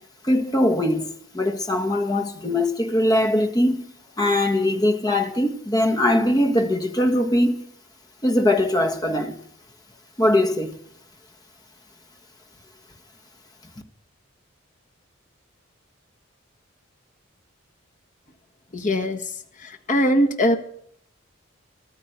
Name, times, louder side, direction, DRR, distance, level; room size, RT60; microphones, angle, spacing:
voice 1, 0.3-1.1 1.3-3.8 4.2-7.6 8.2-9.3 10.2-10.7, left 1 dB, 20° left, 1.5 m, -21 dB
voice 2, 18.7-19.3 19.6-20.6, equal, 40° left, 1.4 m, -21 dB
13.5 x 12.5 x 6.5 m
head